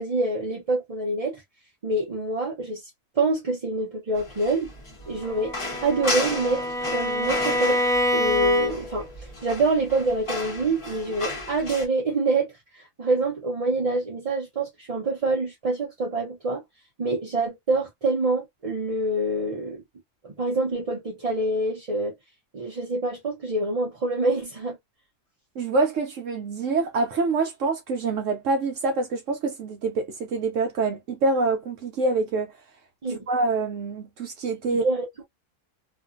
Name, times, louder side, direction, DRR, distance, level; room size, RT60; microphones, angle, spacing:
voice 1, 0.0-1.4 1.8-2.9 3.2-4.7 5.1-16.6 17.0-19.8 20.2-22.1 22.5-24.8 33.0-33.2 34.7-35.1, right 2 dB, 40° right, 0.5 m, -26 dB
sound 1, 4.1-11.9, left 2 dB, 25° left, 0.9 m, -34 dB
Bowed string instrument, 5.2-9.1, left 1 dB, 5° left, 1.0 m, -26 dB
voice 2, 25.6-32.5 33.3-34.8, right 3 dB, 65° right, 0.9 m, -26 dB
2.6 x 2.5 x 2.4 m
omnidirectional pair, 1.5 m